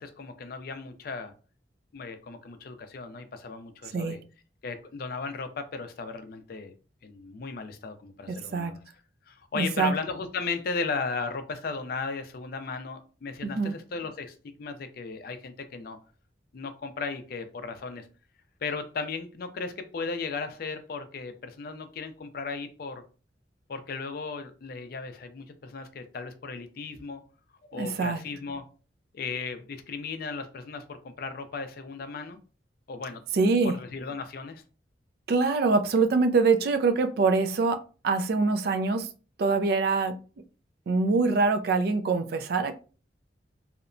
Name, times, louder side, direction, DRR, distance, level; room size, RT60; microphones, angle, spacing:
voice 1, 0.0-1.3 1.9-4.2 4.6-6.7 7.0-8.8 9.3-16.0 16.5-18.1 18.6-23.0 23.7-27.2 27.7-28.6 29.1-32.4 32.9-33.2 33.6-34.6, left 4 dB, 55° left, 9 dB, 0.4 m, -36 dB
voice 2, 8.3-8.7 9.6-9.9 13.4-13.7 27.7-28.2 33.3-33.8 35.3-39.1 39.4-40.2 40.9-42.7, right 4 dB, 60° right, 8 dB, 0.3 m, -24 dB
2.8 x 2.1 x 2.5 m, 0.36 s
head